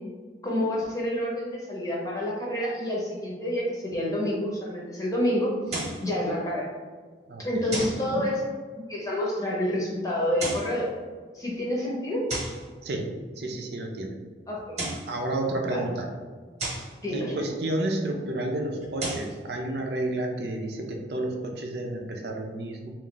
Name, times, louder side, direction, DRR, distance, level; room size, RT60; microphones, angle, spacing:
voice 1, 0.4-6.7 7.4-8.4 8.7-10.9 11.3-12.3 14.5-14.8 15.7-15.9 17.0-17.4, left 1 dB, 20° left, -5 dB, 0.9 m, -28 dB
sound 1, 5.7-6.1 7.7-8.1 10.2-10.8 12.3-12.6 14.6-15.1 16.6-16.9 18.8-19.3, right 2 dB, 40° right, 1.1 m, -32 dB
voice 2, 7.3-7.7 8.0-8.2 12.8-13.1 13.4-14.2 15.1-16.1 17.1-22.9, right 1 dB, 70° right, 2 dB, 0.5 m, -31 dB
3.6 x 2.5 x 3.8 m, 1.5 s
head